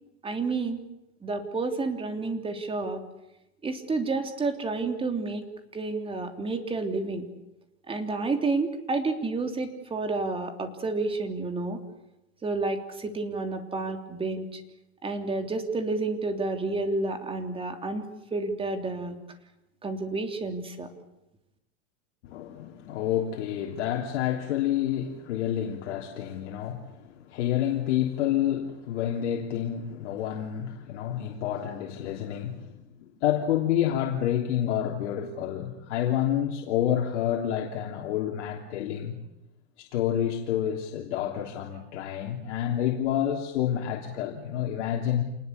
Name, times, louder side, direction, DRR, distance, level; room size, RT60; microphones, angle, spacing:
voice 1, 0.2-0.8 1.2-3.0 3.6-5.4 5.7-7.3 7.9-11.8 12.4-14.6 15.0-18.0 18.3-19.2 19.8-20.9, right 3 dB, 15° right, 3.2 m, -30 dB
voice 2, 22.3-26.9 27.3-32.7 33.2-39.2 39.8-45.2, left 10 dB, 75° left, 3.3 m, -28 dB
28.0 x 20.0 x 8.2 m
supercardioid pair, 140°, 35 cm